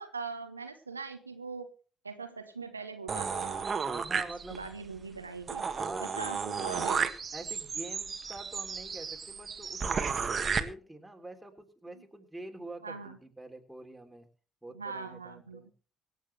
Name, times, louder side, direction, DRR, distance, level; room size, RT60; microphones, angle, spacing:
voice 1, 0.0-1.7 2.0-3.7 4.1-4.2 4.5-5.7 6.0-7.1 11.9-12.0 12.8-13.2 14.7-15.7, right 4 dB, 90° right, 7 dB, 1.0 m, -41 dB
sound 1, 3.1-4.8 5.2-5.3 5.5-10.6, right 5 dB, 40° right, 1.5 m, -33 dB
voice 2, 3.8-4.7 5.6-6.1 7.3-14.3 14.6-15.7, right 2 dB, 10° right, 3 dB, 3.3 m, -46 dB
24.5 x 8.3 x 3.3 m, 0.38 s
figure-of-eight pair, 45°, 0 cm